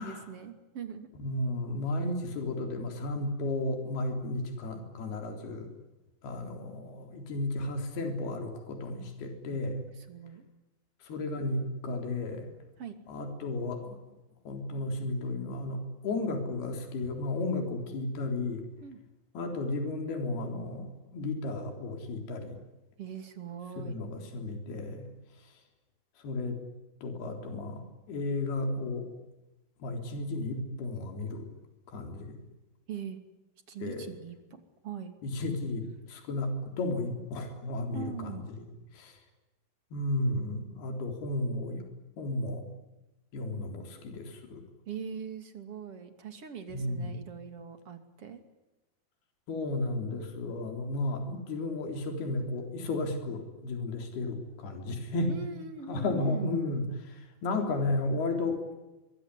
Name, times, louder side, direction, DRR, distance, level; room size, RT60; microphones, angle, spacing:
voice 1, 0.0-1.1 9.5-9.6 10.0-10.4 12.8-13.0 18.8-19.0 23.0-23.9 32.9-33.2 33.7-35.1 37.9-38.5 44.9-48.4 55.3-56.6, right 7 dB, 40° right, 7 dB, 3.1 m, -41 dB
voice 2, 1.2-5.7 6.2-9.9 11.0-12.5 13.1-14.0 14.5-18.7 19.4-22.6 23.8-25.1 26.2-26.6 27.0-29.1 29.8-31.5 31.9-32.4 33.8-34.1 35.2-38.7 38.9-39.2 39.9-41.8 42.2-42.6 43.3-44.6 46.7-47.1 49.5-55.3 55.9-58.7, left 2 dB, 65° left, 4 dB, 5.7 m, -33 dB
24.5 x 23.5 x 9.9 m, 1.0 s
omnidirectional pair, 4.9 m